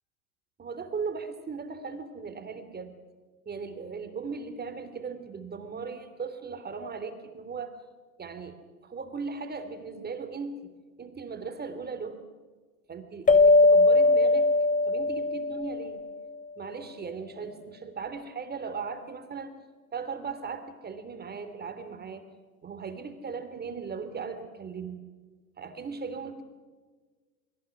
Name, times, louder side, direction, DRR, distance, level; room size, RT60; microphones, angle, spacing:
voice 1, 0.6-3.0 3.4-7.7 8.2-8.6 8.8-10.7 11.0-12.2 12.9-14.5 14.8-16.0 16.6-19.6 19.9-22.2 22.6-25.0 25.6-26.4, right 5 dB, 20° right, 9 dB, 3.1 m, -38 dB
sound 1, 13.3-16.3, left 2 dB, 15° left, 1.4 m, -21 dB
28.5 x 22.5 x 6.1 m, 1.4 s
hypercardioid pair, 90°, 44 cm